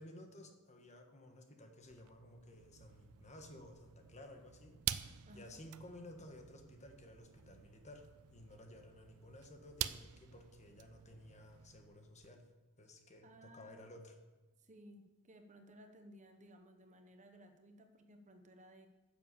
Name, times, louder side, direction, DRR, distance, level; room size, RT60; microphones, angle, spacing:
voice 1, 0.0-4.7 5.3-12.4 12.8-14.2, left 1 dB, 30° left, 4 dB, 1.4 m, -55 dB
sound 1, 1.8-12.3, right 11 dB, 75° right, 0.5 m, -48 dB
voice 2, 5.3-5.6 13.2-13.9 14.6-18.9, equal, 35° right, 6 dB, 1.0 m, -59 dB
10.5 x 7.1 x 6.9 m, 1.2 s
head